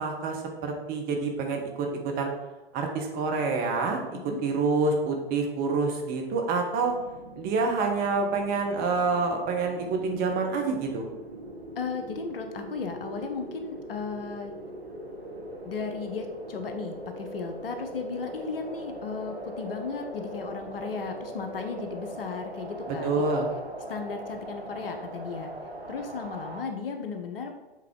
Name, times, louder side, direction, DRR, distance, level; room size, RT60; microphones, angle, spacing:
voice 1, 0.0-2.3 2.7-4.0 4.2-6.9 7.3-11.1 22.9-23.5, right 4 dB, 30° right, 2 dB, 1.1 m, -27 dB
sound 1, 6.8-26.6, right 1 dB, 85° right, 1.1 m, -41 dB
voice 2, 11.8-14.5 15.6-23.4 23.9-25.5 25.9-27.5, left 5 dB, 65° left, 6 dB, 0.9 m, -35 dB
7.7 x 3.7 x 3.6 m, 1.1 s
figure-of-eight pair, 105°, 31 cm